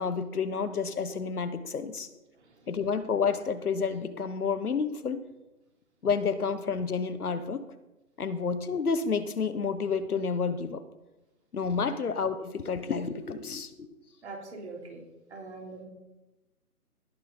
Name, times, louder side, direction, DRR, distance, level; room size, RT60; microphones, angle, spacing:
voice 1, 0.0-2.1 2.7-5.2 6.0-7.6 8.2-10.8 11.5-13.9, left 5 dB, 70° left, 11 dB, 1.2 m, -30 dB
voice 2, 2.3-2.7 11.9-12.0 14.2-15.0 15.3-15.8, right 3 dB, 45° right, 0 dB, 3.5 m, -43 dB
17.5 x 6.2 x 5.3 m, 1.0 s
figure-of-eight pair, 155°, 46 cm